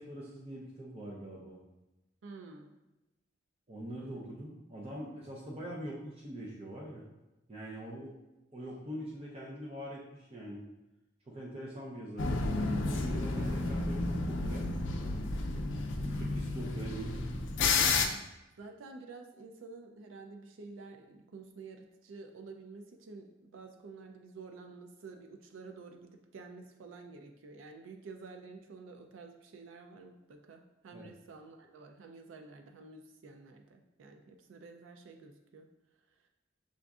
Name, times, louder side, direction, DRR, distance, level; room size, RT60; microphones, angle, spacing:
voice 1, 0.0-1.6 3.7-7.0 7.5-8.1 8.5-10.6 11.3-12.3 12.9-14.7 16.0-17.2 30.9-31.1, right 1 dB, 30° right, -4 dB, 0.6 m, -43 dB
voice 2, 2.2-2.7 4.0-4.3 13.3-13.5 15.5-15.9 16.6-16.8 18.0-18.3 18.6-35.7, right 4 dB, 80° right, 4 dB, 0.4 m, -50 dB
sound 1, 12.2-18.1, left 3 dB, 75° left, 0.5 m, -31 dB
7.0 x 2.5 x 2.3 m, 0.98 s
head